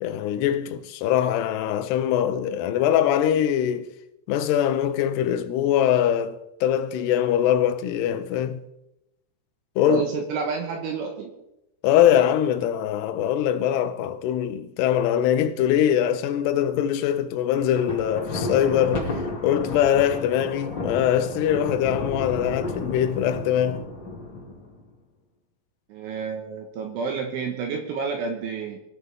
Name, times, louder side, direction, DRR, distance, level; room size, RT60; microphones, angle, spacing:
voice 1, 0.0-3.9 4.3-8.6 9.8-10.0 11.8-23.8, left 10 dB, 80° left, 2.4 m, -22 dB
voice 2, 9.9-11.3 25.9-28.8, right 5 dB, 75° right, 3.7 m, -29 dB
Thunder, 17.6-24.8, left 2 dB, 30° left, 2.3 m, -33 dB
23.5 x 13.0 x 3.6 m
omnidirectional pair, 5.9 m